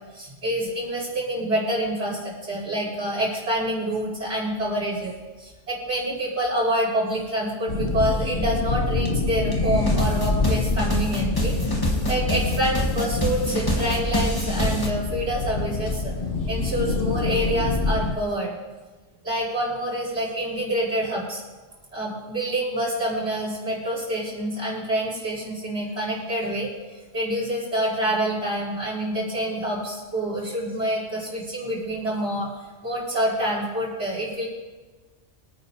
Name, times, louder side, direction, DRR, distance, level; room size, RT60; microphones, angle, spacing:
voice 1, 0.1-16.1 16.5-18.6 19.2-21.4 21.9-32.5 32.8-34.5, right 1 dB, 60° right, -7 dB, 5.6 m, -27 dB
sound 1, 7.7-18.1, left 3 dB, 50° left, 1.1 m, -26 dB
sound 2, 9.0-9.1 9.5-14.9, equal, 20° left, 1.5 m, -27 dB
24.5 x 9.4 x 2.8 m, 1.3 s
omnidirectional pair, 1.3 m